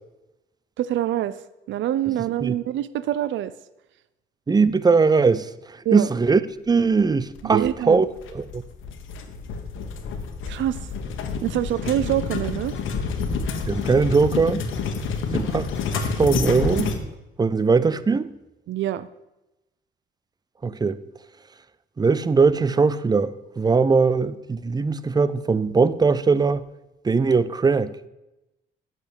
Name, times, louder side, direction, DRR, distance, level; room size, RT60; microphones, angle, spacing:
voice 1, 0.8-1.3 1.7-3.5 5.8-6.1 7.4-8.0 10.5-10.8 11.4-12.7 18.7-19.1, right 12 dB, 70° right, 16 dB, 0.5 m, -25 dB
voice 2, 4.5-6.4 6.7-8.6 13.7-14.7 15.3-15.7 15.9-16.9 17.4-18.3 20.6-21.0 22.0-26.6 27.0-27.9, right 4 dB, 20° right, 16 dB, 0.5 m, -20 dB
sound 1, 7.4-17.0, left 5 dB, 80° left, 1.3 m, -29 dB
8.5 x 6.7 x 8.2 m, 0.97 s
cardioid pair, 90°, 20 cm